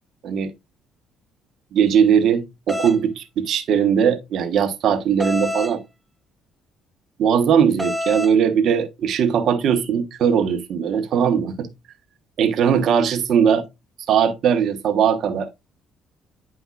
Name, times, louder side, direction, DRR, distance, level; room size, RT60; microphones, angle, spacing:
voice 1, 1.7-5.8 7.2-11.7 12.4-13.6 14.1-15.5, right 7 dB, 65° right, 1.2 m, -19 dB
sound 1, 2.7-3.0 5.2-5.8 7.8-8.3, left 1 dB, 15° right, 0.8 m, -26 dB
9.6 x 5.2 x 2.4 m
cardioid pair, 90°, 0 cm